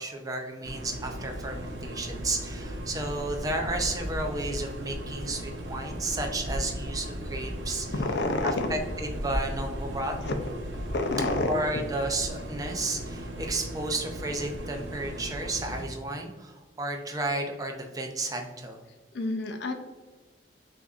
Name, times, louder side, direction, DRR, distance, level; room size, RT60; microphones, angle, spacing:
voice 1, 0.0-7.9 8.7-8.8 9.2-10.1 11.5-18.8, right 2 dB, 20° right, 3 dB, 0.5 m, -32 dB
sound 1, 0.6-15.9, equal, 85° right, 0.7 m, -36 dB
voice 2, 7.9-8.7 10.2-10.3 10.9-11.5 19.1-19.7, left 2 dB, 65° left, 5 dB, 0.5 m, -28 dB
6.1 x 2.6 x 2.4 m, 1.3 s
head